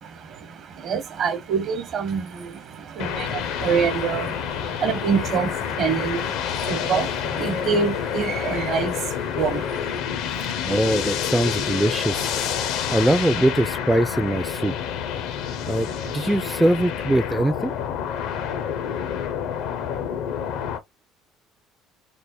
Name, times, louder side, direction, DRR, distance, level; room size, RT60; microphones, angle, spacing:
voice 1, 0.0-10.0, right 6 dB, 55° right, 1.0 m, -26 dB
sound 1, 3.0-20.8, left 8 dB, 75° left, 0.6 m, -28 dB
voice 2, 10.3-14.7 15.7-17.7, right 1 dB, 5° right, 0.3 m, -22 dB
3.3 x 2.1 x 4.0 m
supercardioid pair, 85°, 0 cm